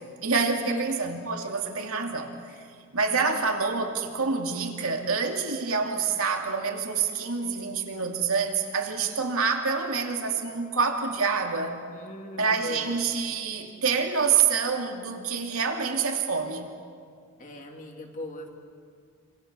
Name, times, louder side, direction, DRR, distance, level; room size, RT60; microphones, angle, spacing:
voice 1, 0.0-2.3 2.9-11.8 12.4-16.7, right 5 dB, 75° right, 3 dB, 2.7 m, -27 dB
voice 2, 11.9-13.0 17.4-18.5, left 1 dB, 40° left, 2 dB, 3.1 m, -39 dB
27.5 x 26.5 x 6.9 m, 2.2 s
head